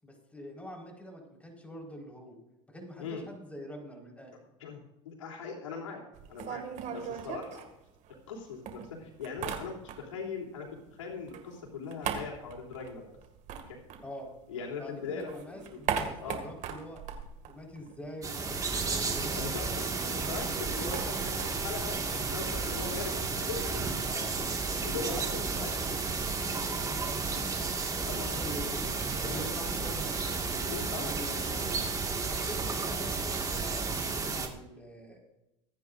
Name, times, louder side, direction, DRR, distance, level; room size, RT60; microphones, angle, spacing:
voice 1, 0.0-2.4 2.7-4.3 14.0-14.3 14.8-17.0 17.5-19.4 24.1-24.3 25.0-25.9 26.7-30.2 30.9-31.7 32.0-35.2, equal, 10° left, 0 dB, 4.6 m, -45 dB
voice 2, 4.6-6.0 6.3-7.6 8.3-10.7 11.0-13.0 13.7-13.8 14.5-15.4 15.7-15.8 16.2-16.4 19.4-23.8 24.8-26.1 28.0-28.4 29.2-29.5 30.6-31.4, left 5 dB, 90° left, -1 dB, 3.3 m, -40 dB
sound 1, 6.1-8.3 8.7-10.3 10.6-14.7 15.0-18.3 18.6-18.7 18.9-24.7, right 7 dB, 50° right, 2.1 m, -40 dB
sound 2, 18.2-34.5, right 4 dB, 20° right, 1.9 m, -32 dB
24.5 x 9.8 x 2.6 m, 0.92 s
hypercardioid pair, 90°, 16 cm